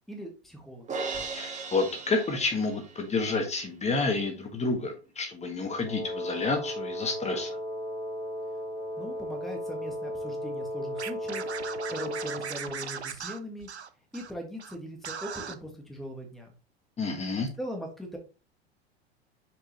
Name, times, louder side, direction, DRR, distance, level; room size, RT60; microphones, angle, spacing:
voice 1, 0.1-0.8 9.0-11.4 11.9-13.7 14.1-16.5 17.6-18.2, equal, ahead, 2 dB, 1.7 m, -40 dB
Crash cymbal, 0.9-3.2, right 4 dB, 20° right, 1.8 m, -37 dB
voice 2, 1.3-7.6 17.0-17.5, left 3 dB, 20° left, 4 dB, 1.7 m, -29 dB
Wind instrument woodwind instrument, 5.8-12.6, equal, 75° left, 2.4 m, -35 dB
Scratching (performance technique), 11.0-14.3 14.6-14.7 15.0-15.5, right 7 dB, 85° right, 0.7 m, -38 dB
7.1 x 5.5 x 3.1 m, 0.31 s
figure-of-eight pair, 85°, 32 cm